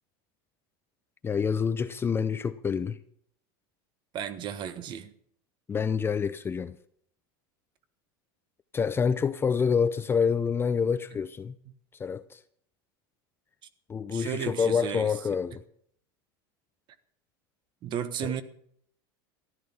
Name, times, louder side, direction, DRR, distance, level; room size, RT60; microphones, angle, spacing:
voice 1, 1.2-3.0 5.7-6.8 8.7-11.6 12.0-12.4 13.9-15.6 18.2-18.3, left 6 dB, 20° left, 0.6 m, -27 dB
voice 2, 4.1-5.1 11.7-11.8 14.1-15.2 17.8-18.4, right 9 dB, 40° right, 1.3 m, -34 dB
14.5 x 11.0 x 5.8 m
supercardioid pair, 125°, 12 cm